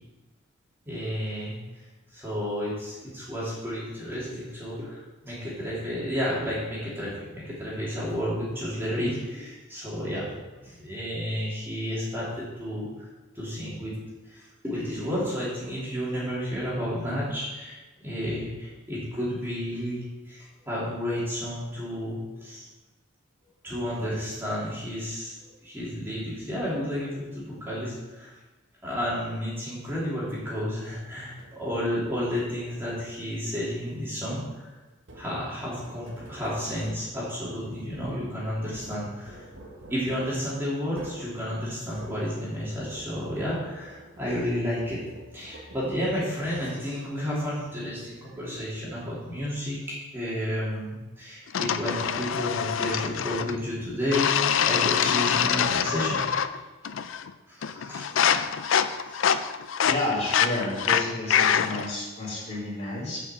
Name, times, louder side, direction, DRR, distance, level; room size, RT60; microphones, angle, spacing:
voice 1, 0.8-1.6 2.1-13.1 13.3-13.9 14.3-17.8 18.0-22.6 23.6-25.4 25.6-28.3 28.8-34.7 35.1-39.5 39.9-45.0 45.3-56.2 57.5-58.1 59.0-59.3, equal, 10° right, -8 dB, 3.0 m, -31 dB
sound 1, 29.9-30.4 31.4-31.9 32.7-33.3 35.0-43.5 43.8-47.0, right 1 dB, 75° right, 1.6 m, -49 dB
sound 2, 51.5-53.6 54.1-56.6 56.8-57.3 57.6-61.9, left 8 dB, 85° left, 0.5 m, -25 dB
voice 2, 59.8-63.2, left 2 dB, 35° left, -7 dB, 3.4 m, -31 dB
7.8 x 5.9 x 7.5 m, 1.2 s
head